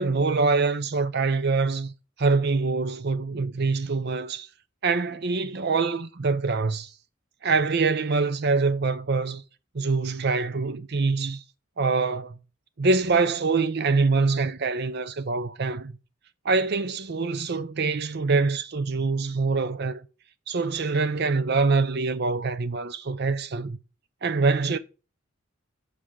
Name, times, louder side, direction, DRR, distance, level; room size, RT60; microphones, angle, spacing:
voice 1, 0.0-1.9 2.2-4.5 4.8-6.9 7.4-9.4 9.7-11.4 11.8-12.4 12.8-15.9 16.4-20.0 20.5-23.8 24.2-24.8, right 4 dB, 55° right, 0.6 m, -24 dB
7.5 x 4.9 x 6.4 m
head